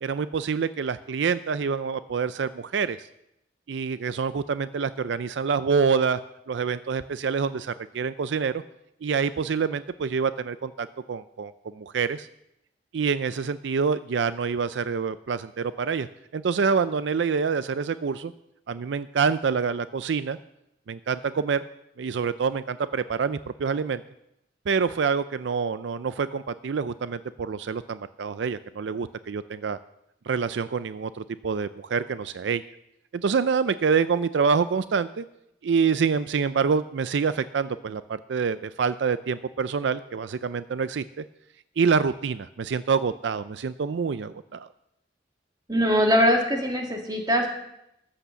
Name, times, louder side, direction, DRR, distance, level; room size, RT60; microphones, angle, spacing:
voice 1, 0.0-3.1 3.7-6.2 6.5-8.6 9.0-12.3 12.9-16.1 16.3-18.3 18.7-20.4 20.9-21.6 22.0-24.0 24.7-29.8 30.3-32.6 33.1-35.2 35.6-41.2 41.8-44.7, right 5 dB, 80° right, 14 dB, 0.4 m, -26 dB
voice 2, 45.7-47.5, equal, 20° right, 1 dB, 2.1 m, -22 dB
13.5 x 8.6 x 7.0 m, 0.82 s
head